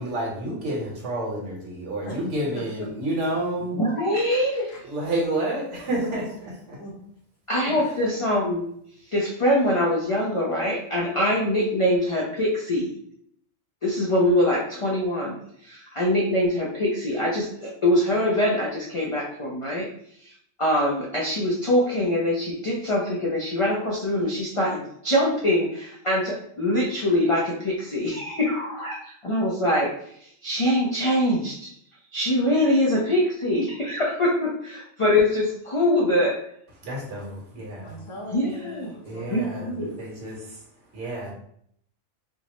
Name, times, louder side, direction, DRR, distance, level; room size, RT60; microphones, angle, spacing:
voice 1, 0.0-3.8 4.8-6.8 7.8-7.9 36.8-38.0 39.0-40.6 40.9-41.3, right 1 dB, 65° right, -3 dB, 1.4 m, -30 dB
voice 2, 2.5-2.9 4.1-4.8 6.0-6.2 6.7-6.9 7.6-7.7 37.8-39.7, left 1 dB, 80° left, -2 dB, 1.4 m, -39 dB
voice 3, 3.7-4.6 7.5-8.7 9.1-12.9 13.8-19.9 20.2-29.9 30.2-31.7 32.1-36.4 38.3-38.9 39.3-39.9, left 1 dB, 50° left, -4 dB, 0.3 m, -23 dB
4.3 x 2.0 x 2.9 m, 0.68 s
omnidirectional pair, 1.3 m